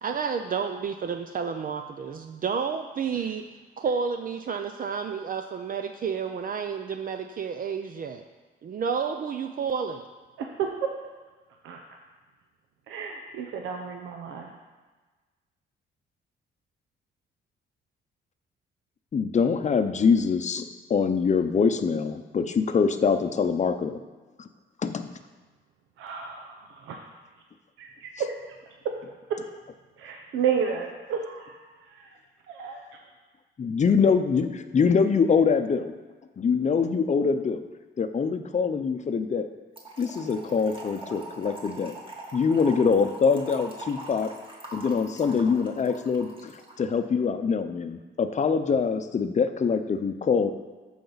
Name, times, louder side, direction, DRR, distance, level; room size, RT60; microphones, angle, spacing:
voice 1, 0.0-3.4 3.8-8.2 8.6-10.0, right 6 dB, 45° right, 6 dB, 0.5 m, -30 dB
voice 2, 12.9-14.5 26.0-26.5 26.8-27.0 27.8-28.1 30.0-31.5 32.5-32.8, right 7 dB, 85° right, 2 dB, 0.8 m, -31 dB
voice 3, 19.1-20.6 20.9-24.0 24.8-25.1 33.7-34.5 34.7-35.9 36.4-37.6 38.0-39.5 40.0-41.9 42.3-44.3 44.7-46.5 46.8-50.5, left 5 dB, 35° left, 9 dB, 0.7 m, -24 dB
Trickle dribble / Fill (with liquid), 39.8-46.8, right 1 dB, 25° right, 1.9 m, -42 dB
14.0 x 5.2 x 4.0 m, 1.3 s
cardioid pair, 90°, 20 cm